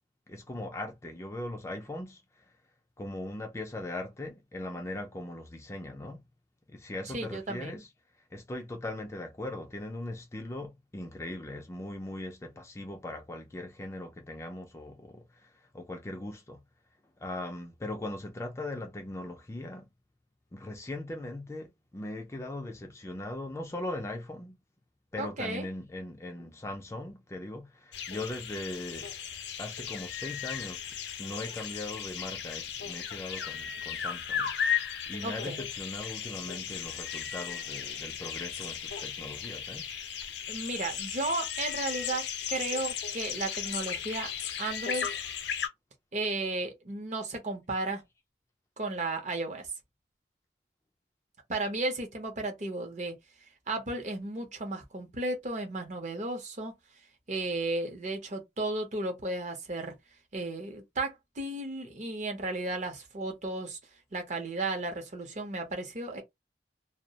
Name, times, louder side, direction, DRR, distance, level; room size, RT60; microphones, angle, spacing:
voice 1, 0.3-2.4 3.0-6.2 6.7-7.9 8.3-16.6 17.2-19.9 20.5-24.5 25.1-29.1 29.6-30.9 31.2-39.9, left 1 dB, 15° left, 0.3 m, -39 dB
voice 2, 7.1-7.8 25.2-25.7 35.2-35.6 40.5-44.3 44.6-45.1 46.1-48.0 48.8-49.7 51.5-53.1 53.7-56.7 57.3-59.9 60.3-63.8 64.1-66.2, right 2 dB, 40° right, 0.6 m, -34 dB
sound 1, 27.9-45.7, left 8 dB, 80° left, 0.5 m, -36 dB
2.2 x 2.0 x 2.7 m
head